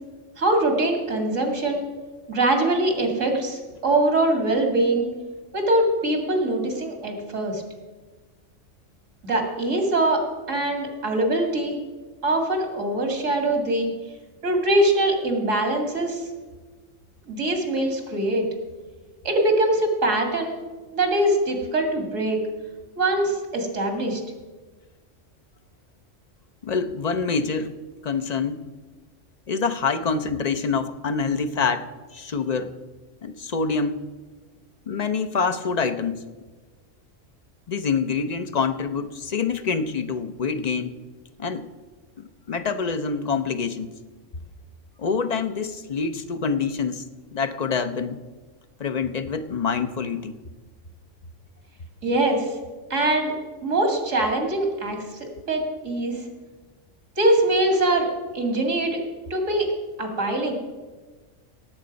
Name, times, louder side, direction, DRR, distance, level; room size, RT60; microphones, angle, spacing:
voice 1, 0.4-1.8 2.3-5.1 5.5-7.6 9.2-10.2 10.5-11.8 12.2-13.9 14.4-16.2 17.3-18.4 19.2-20.6 20.9-22.4 23.0-24.2 52.0-52.5 52.9-53.3 53.6-55.0 55.5-56.2 57.2-59.0 59.3-59.7 60.0-60.5, right 1 dB, 80° right, 3 dB, 2.5 m, -23 dB
voice 2, 26.6-27.7 28.0-28.6 29.5-32.7 33.2-34.0 34.9-36.2 37.7-40.9 41.4-41.7 42.2-43.9 45.0-47.0 47.3-48.2 48.8-50.4, left 5 dB, 45° left, 9 dB, 0.6 m, -26 dB
17.5 x 7.8 x 5.2 m, 1.3 s
omnidirectional pair, 1.3 m